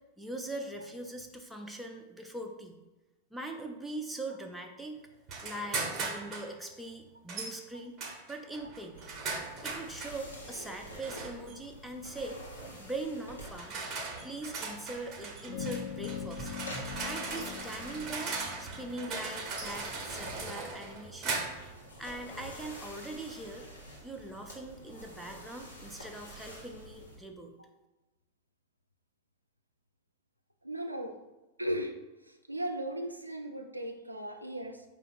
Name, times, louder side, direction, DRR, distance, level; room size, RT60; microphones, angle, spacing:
voice 1, 0.2-2.8 3.3-5.0 5.4-8.0 8.3-9.0 9.6-12.4 12.8-13.8 14.2-16.5 17.0-21.4 22.0-23.7 24.0-27.6, right 2 dB, 5° right, 3 dB, 0.5 m, -41 dB
sound 1, 5.3-6.5 7.3-7.6 8.0-10.2 11.0-11.6 12.6-12.8 13.4-21.7, right 4 dB, 30° right, 0.9 m, -39 dB
sound 2, 8.9-27.2, right 1 dB, 85° left, 1.2 m, -48 dB
sound 3, 15.5-20.3, left 11 dB, 50° left, 0.4 m, -43 dB
voice 2, 30.6-31.2 31.6-31.9 32.3-34.8, right 1 dB, 85° right, 5 dB, 0.3 m, -36 dB
4.8 x 2.5 x 4.0 m, 1.1 s
figure-of-eight pair, 90°, 0 cm